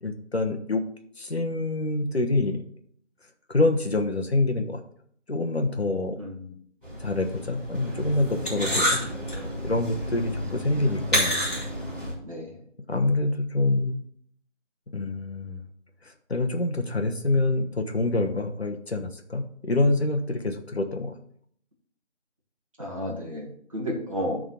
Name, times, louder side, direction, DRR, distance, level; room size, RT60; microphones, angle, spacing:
voice 1, 0.0-0.8 1.2-2.6 3.5-4.8 5.3-6.2 7.0-9.0 9.6-11.4 12.9-14.0 14.9-15.6 16.0-21.2, left 2 dB, 60° left, 5 dB, 1.1 m, -26 dB
voice 2, 6.2-6.5 8.6-8.9 12.2-12.6 22.8-24.4, equal, 30° right, -3 dB, 1.7 m, -32 dB
sound 1, 6.8-12.1, equal, 5° left, 2.0 m, -29 dB
9.9 x 3.9 x 6.3 m, 0.62 s
figure-of-eight pair, 170°, 36 cm